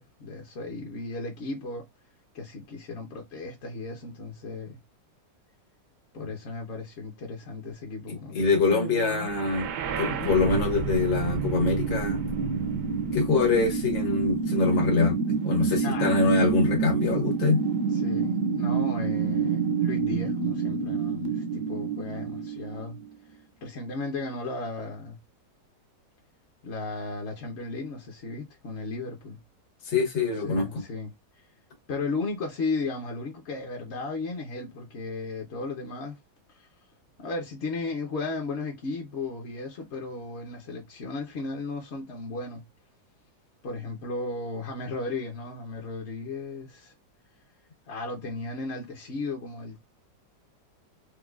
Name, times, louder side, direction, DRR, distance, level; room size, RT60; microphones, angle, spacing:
voice 1, 0.0-1.8 2.3-4.8 6.1-9.3 10.1-10.3 15.8-16.5 17.9-23.0 23.6-25.2 26.6-29.4 30.2-31.4 31.9-36.2 36.5-36.7 37.2-42.6 43.6-46.9 47.9-49.8, left 3 dB, 50° left, 0.8 m, -35 dB
voice 2, 8.1-9.7 10.0-12.2 13.1-15.2 15.4-17.6 29.9-30.8, left 4 dB, 85° left, 2.0 m, -24 dB
sound 1, 9.2-23.1, right 5 dB, 70° right, 1.2 m, -28 dB
4.6 x 2.3 x 2.3 m
omnidirectional pair, 2.0 m